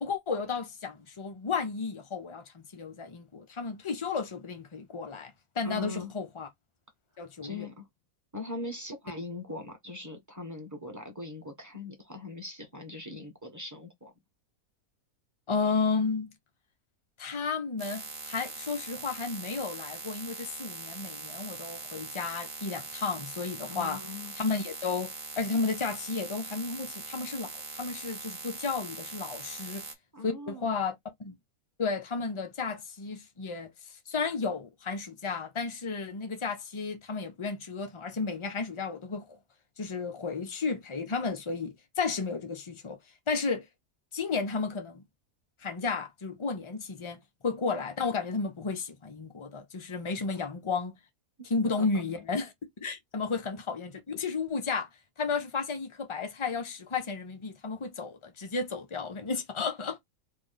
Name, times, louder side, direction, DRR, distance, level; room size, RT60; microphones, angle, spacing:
voice 1, 0.0-6.5 7.2-7.7 15.5-16.3 17.2-24.0 24.4-29.8 30.2-31.3 31.8-33.7 34.1-39.4 39.8-43.0 43.3-43.7 44.1-45.0 45.6-51.0 51.4-54.9 55.2-60.0, left 4 dB, 50° left, 0.3 m, -33 dB
voice 2, 5.6-6.1 7.4-7.9 8.3-14.1 23.7-24.3 30.1-30.7 51.4-52.0, left 2 dB, 15° right, 0.9 m, -41 dB
sound 1, 17.8-29.9, right 4 dB, 40° right, 1.0 m, -42 dB
3.2 x 2.5 x 3.8 m
omnidirectional pair, 1.6 m